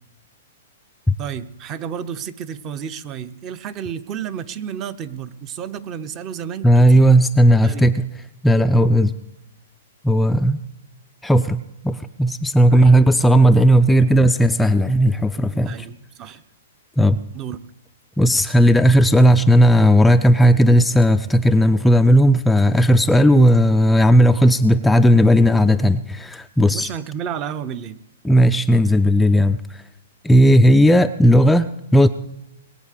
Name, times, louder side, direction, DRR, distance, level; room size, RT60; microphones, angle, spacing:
voice 1, 1.2-7.1 7.6-7.9 12.7-13.0 15.6-16.4 17.3-17.6 26.7-28.0, right 8 dB, 30° right, 13 dB, 0.8 m, -31 dB
voice 2, 6.6-8.1 8.4-9.1 10.0-10.6 11.2-15.9 17.0-17.2 18.2-26.9 28.2-29.8 30.2-32.1, equal, 5° left, 7 dB, 0.4 m, -15 dB
20.5 x 8.1 x 6.7 m, 0.91 s
hypercardioid pair, 140°, 0 cm